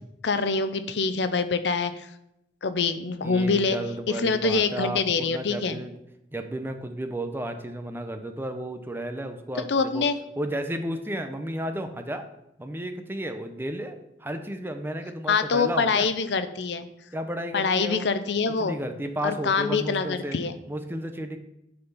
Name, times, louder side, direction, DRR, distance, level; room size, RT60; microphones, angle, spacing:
voice 1, 0.2-2.1 2.6-3.8 4.1-5.8 9.7-10.2 15.3-16.9 17.5-18.8 19.2-20.5, left 4 dB, 75° left, 11 dB, 0.6 m, -25 dB
voice 2, 3.2-6.0 6.3-10.1 10.4-12.2 12.6-16.1 17.1-18.1 18.6-20.4 20.7-21.4, right 1 dB, 15° right, 7 dB, 0.7 m, -33 dB
9.7 x 4.3 x 5.6 m, 0.84 s
head